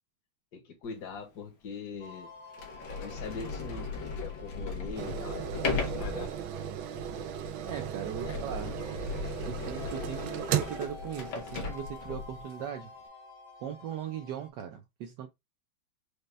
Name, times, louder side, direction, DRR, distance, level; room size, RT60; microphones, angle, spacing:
voice 1, 0.5-2.3 3.0-6.3 8.3-8.4, left 5 dB, 60° left, 1.7 m, -42 dB
Sliding door, 1.1-1.2 2.0-2.1 2.5-12.4, left 4 dB, 85° left, 1.8 m, -38 dB
sound 1, 2.0-14.5, left 3 dB, 40° left, 1.1 m, -50 dB
sound 2, 5.0-12.0 12.5-12.6, right 9 dB, 90° right, 1.4 m, -36 dB
voice 2, 7.7-8.7 9.5-12.9 13.6-15.3, right 9 dB, 70° right, 1.2 m, -39 dB
5.2 x 2.2 x 3.2 m
omnidirectional pair, 2.1 m